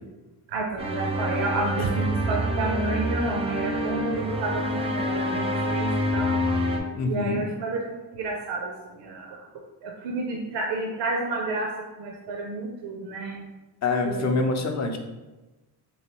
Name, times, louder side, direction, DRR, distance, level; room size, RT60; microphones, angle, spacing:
voice 1, 0.5-6.5 7.0-7.8 8.1-9.5 9.8-11.7 12.0-13.4 14.0-14.5, right 2 dB, 85° right, 0 dB, 0.5 m, -30 dB
sound 1, 0.8-6.8, equal, 15° right, 0.4 m, -27 dB
voice 2, 6.9-7.4 13.8-15.0, left 3 dB, 40° left, 4 dB, 0.5 m, -25 dB
3.1 x 2.6 x 2.9 m, 1.1 s
cardioid pair, 80°, 42 cm